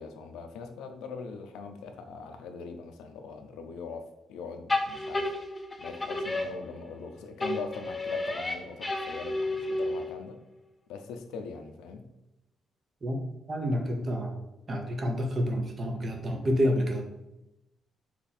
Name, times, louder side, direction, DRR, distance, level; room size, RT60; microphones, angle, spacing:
voice 1, 0.0-4.0 4.3-5.3 5.8-10.4 10.9-12.1, left 5 dB, 90° left, 6 dB, 0.4 m, -41 dB
sound 1, 4.7-7.1 7.4-10.3, left 2 dB, 20° left, 0.4 m, -32 dB
voice 2, 13.5-14.4 14.7-17.1, equal, 40° right, 3 dB, 0.7 m, -28 dB
3.0 x 2.5 x 4.1 m, 0.91 s
cardioid pair, 90°, 0 cm